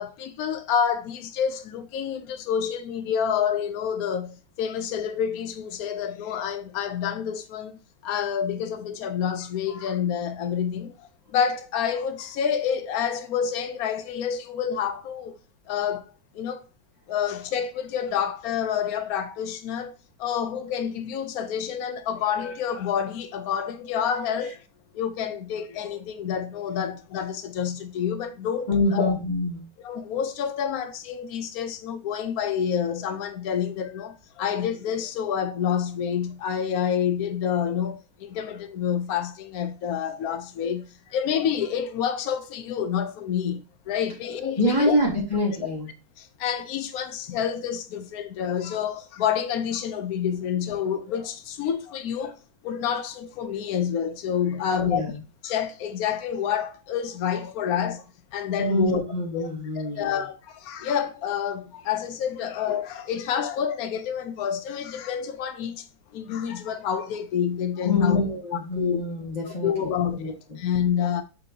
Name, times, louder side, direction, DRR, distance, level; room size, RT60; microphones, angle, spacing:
voice 1, 0.0-15.4 15.7-16.6 17.1-19.9 20.2-24.6 24.9-29.1 29.8-44.9 46.2-52.4 52.6-55.0 55.4-59.0 59.3-59.5 59.7-65.9 66.1-68.2 68.8-69.0 69.6-71.2, left 8 dB, 85° left, 0.8 m, -28 dB
voice 2, 28.7-29.6 44.6-45.9 54.6-55.2 58.6-60.1 67.8-70.6, left 1 dB, 20° left, 1.6 m, -26 dB
7.8 x 4.3 x 2.8 m
omnidirectional pair, 2.3 m